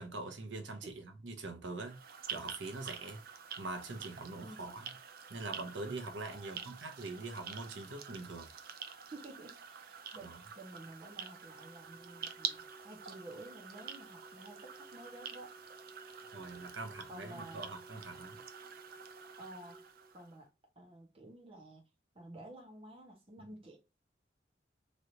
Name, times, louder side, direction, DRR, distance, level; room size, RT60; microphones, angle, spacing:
voice 1, 0.0-2.0 2.3-3.2 3.6-4.9 5.3-8.5 10.2-10.4 16.3-18.4, right 2 dB, 85° right, 0.9 m, -43 dB
sound 1, 1.8-20.3, right 7 dB, 55° right, 0.5 m, -47 dB
voice 2, 4.4-4.8 6.3-6.7 9.1-15.5 17.1-17.6 19.4-19.9 20.1-20.5 20.8-21.9 22.1-23.8, right 1 dB, 30° right, 1.1 m, -52 dB
sound 2, 11.0-20.1, right 2 dB, 15° right, 1.5 m, -58 dB
3.2 x 2.8 x 2.9 m
head